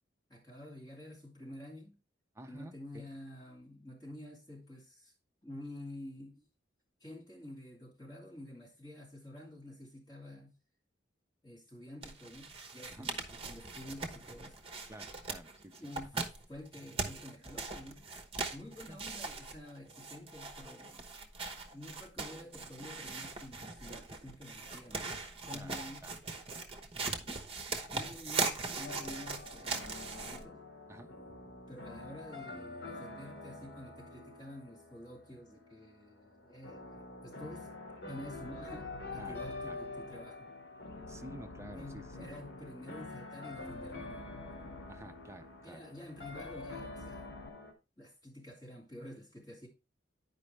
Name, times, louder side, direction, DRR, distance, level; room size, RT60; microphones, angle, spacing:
voice 1, 0.3-2.0 2.5-5.1 5.4-6.4 7.0-10.6 11.4-14.6 15.8-18.1 18.5-21.0 21.7-26.1 27.9-30.6 31.7-37.7 38.1-40.5 41.7-44.8 45.6-47.3 48.0-49.7, left 1 dB, 20° left, 2.8 m, -49 dB
voice 2, 2.3-3.1 12.9-13.1 14.9-16.2 18.9-19.0 25.5-25.8 26.0-26.2 30.9-31.6 39.2-39.4 39.7-39.8 41.1-42.3 44.9-45.8, right 1 dB, 15° right, 0.5 m, -50 dB
sound 1, 12.0-30.4, right 4 dB, 30° right, 1.0 m, -40 dB
sound 2, 28.8-47.7, left 2 dB, 65° left, 1.8 m, -47 dB
sound 3, 37.5-47.5, left 2 dB, 80° left, 0.8 m, -52 dB
9.9 x 5.2 x 3.3 m
head